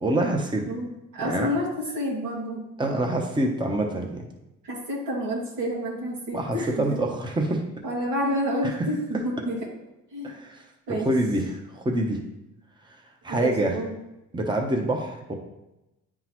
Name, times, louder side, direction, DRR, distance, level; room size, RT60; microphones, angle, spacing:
voice 1, 0.0-0.6 1.2-1.5 2.8-4.2 6.3-7.6 9.1-9.2 10.2-10.6 10.9-12.2 13.2-13.8 14.3-15.3, right 1 dB, 15° right, 1 dB, 0.9 m, -26 dB
voice 2, 0.7-2.7 4.6-7.0 7.8-9.0 9.2-9.7 10.1-10.4 10.9-11.1 13.3-13.9, equal, 85° right, -4 dB, 2.2 m, -29 dB
9.4 x 3.8 x 3.1 m, 0.94 s
cardioid pair, 90°, 30 cm